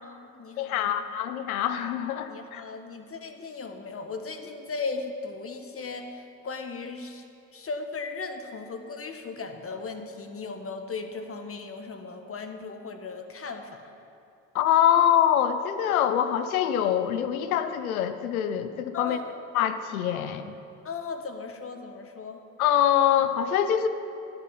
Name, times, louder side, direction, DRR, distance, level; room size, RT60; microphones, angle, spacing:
voice 1, 0.0-1.0 2.2-7.2 7.5-13.9 18.9-19.4 20.8-22.4, left 4 dB, 30° left, 6 dB, 1.4 m, -37 dB
voice 2, 0.6-2.6 14.5-19.2 19.5-20.5 22.6-23.9, left 10 dB, 90° left, 10 dB, 0.7 m, -24 dB
12.5 x 10.0 x 5.7 m, 2.7 s
hypercardioid pair, 60°, 41 cm